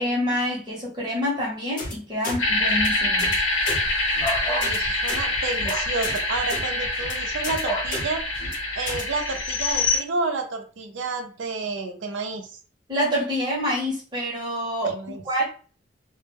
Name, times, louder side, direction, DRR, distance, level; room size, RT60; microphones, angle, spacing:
voice 1, 0.0-3.4 12.9-15.4, equal, 25° right, -3 dB, 0.8 m, -27 dB
sound 1, 1.8-1.9 2.2-2.4 2.7-2.9 3.2-3.4 3.6-3.8 4.1-4.3 4.6-4.8 5.0-5.2 5.5-5.7 6.0-6.2 6.5-6.6 6.9-7.1 7.4-7.6 7.9-8.0 8.4-8.5 8.9-9.0, left 1 dB, 45° left, 0.8 m, -33 dB
sound 2, 2.4-10.0, left 2 dB, 85° left, 0.7 m, -25 dB
sound 3, 4.2-4.7 5.6-5.9 7.6-7.9, equal, 20° left, 0.3 m, -29 dB
voice 2, 4.5-8.2 8.8-12.5 14.9-15.2, right 3 dB, 75° right, 5 dB, 0.5 m, -30 dB
2.1 x 2.0 x 3.3 m, 0.40 s
head